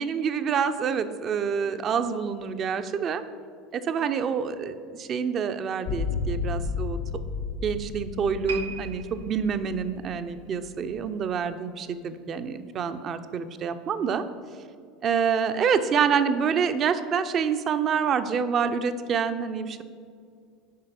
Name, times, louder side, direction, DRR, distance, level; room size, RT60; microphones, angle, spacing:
voice 1, 0.0-3.2 3.7-7.0 7.6-14.2 15.0-19.8, right 6 dB, 40° right, 10 dB, 0.5 m, -27 dB
sound 1, 5.8-11.1, left 5 dB, 65° left, 0.6 m, -33 dB
sound 2, 8.5-11.8 12.1-12.3 13.0-13.1, right 6 dB, 85° right, 0.6 m, -42 dB
7.4 x 5.1 x 5.9 m, 2.3 s
hypercardioid pair, 80°, 0 cm